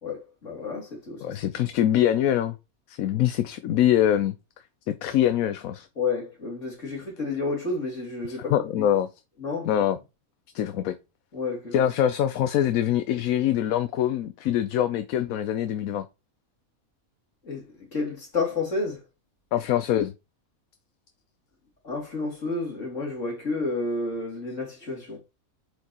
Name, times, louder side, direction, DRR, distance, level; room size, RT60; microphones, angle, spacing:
voice 1, 0.0-1.4 6.0-8.9 9.4-9.7 11.3-11.8 17.4-17.7 17.9-19.0 21.8-25.2, left 3 dB, 60° left, 3.0 m, -30 dB
voice 2, 1.2-2.6 2.9-4.3 4.9-5.9 8.3-9.1 9.6-10.0 10.5-10.9 11.7-16.0 19.5-20.1, left 11 dB, 80° left, 1.1 m, -24 dB
8.0 x 4.6 x 2.9 m
omnidirectional pair, 1.5 m